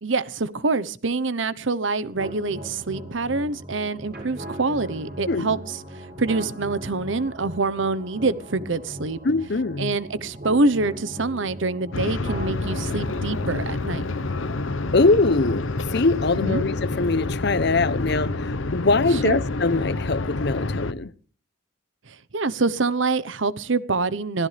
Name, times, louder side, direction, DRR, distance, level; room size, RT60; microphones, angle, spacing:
voice 1, 0.0-5.8 6.2-9.2 9.8-14.0 16.4-16.6 19.1-19.4 22.1-24.5, right 3 dB, 70° right, 0.9 m, -25 dB
sound 1, 2.1-18.1, right 1 dB, 50° right, 7.9 m, -40 dB
voice 2, 9.2-10.0 14.9-21.1, left 3 dB, 55° left, 0.8 m, -22 dB
sound 2, 11.9-20.9, left 2 dB, 80° left, 0.9 m, -28 dB
24.5 x 16.0 x 3.4 m
head